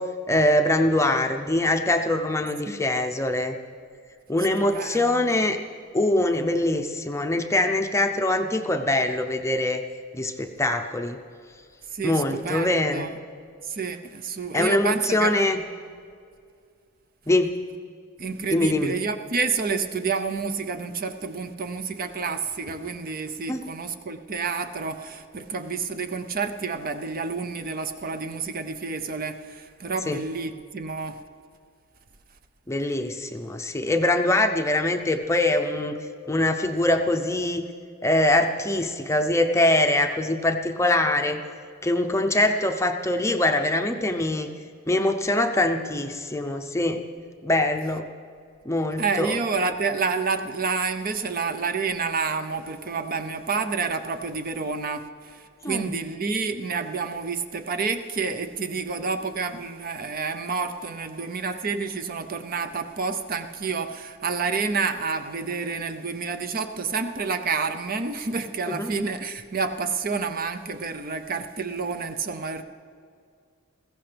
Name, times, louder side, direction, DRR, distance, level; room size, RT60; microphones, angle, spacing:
voice 1, 0.0-3.5 4.3-5.6 5.9-9.8 10.1-11.2 12.0-13.1 14.5-15.6 17.3-17.5 18.5-18.9 23.5-23.6 30.1-30.2 32.7-35.9 36.3-37.7 38.0-41.4 41.8-44.5 44.9-47.0 47.4-48.1 48.6-49.3 55.6-55.9 68.7-68.9, left 1 dB, 15° left, 6 dB, 0.6 m, -23 dB
voice 2, 4.6-5.5 11.9-13.1 13.6-15.3 18.2-31.2 49.0-72.6, right 4 dB, 40° right, 8 dB, 0.6 m, -29 dB
20.5 x 15.5 x 3.4 m, 2.2 s
head